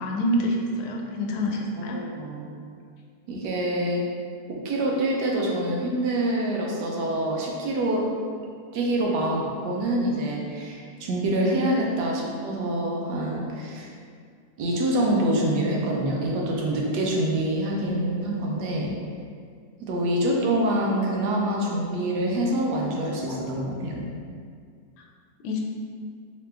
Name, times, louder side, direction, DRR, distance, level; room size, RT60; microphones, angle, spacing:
voice 1, 0.0-2.0 23.2-23.5 25.4-25.6, equal, 80° left, 0 dB, 1.1 m, -27 dB
voice 2, 1.8-2.5 3.3-4.0 4.5-8.1 8.7-13.9 14.6-18.9 19.8-24.1, right 1 dB, 90° right, -2 dB, 1.3 m, -26 dB
3.3 x 2.9 x 3.3 m, 2.2 s
omnidirectional pair, 1.7 m